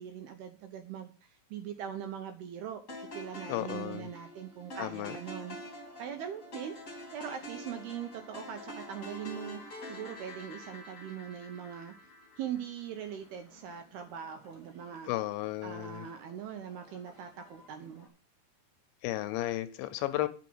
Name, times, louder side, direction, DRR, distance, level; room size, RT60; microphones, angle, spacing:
voice 1, 0.0-2.8 3.1-5.6 6.0-6.8 7.1-11.9 12.4-15.1 15.6-18.1, right 9 dB, 75° right, 6 dB, 2.4 m, -41 dB
sound 1, 2.9-13.1, equal, 25° left, 1.7 m, -46 dB
voice 2, 3.5-4.1 4.8-5.2 15.1-16.1 19.0-20.3, left 15 dB, 80° left, 11 dB, 2.8 m, -34 dB
sound 2, 13.0-18.1, equal, 10° right, 1.3 m, -59 dB
9.7 x 6.2 x 6.1 m, 0.37 s
omnidirectional pair, 5.4 m